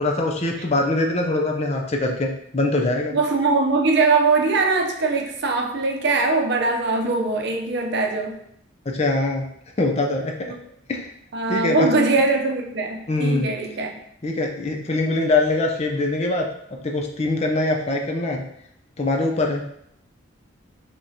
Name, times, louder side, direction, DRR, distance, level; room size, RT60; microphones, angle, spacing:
voice 1, 0.0-3.2 8.9-9.5 9.8-10.5 10.9-11.1 11.5-11.9 13.1-13.5 14.2-16.5 16.8-18.4 19.0-19.6, left 2 dB, 30° left, 2 dB, 0.5 m, -23 dB
voice 2, 3.1-8.4 11.3-13.9, right 3 dB, 55° right, 2 dB, 0.6 m, -21 dB
5.2 x 2.9 x 2.8 m, 0.71 s
head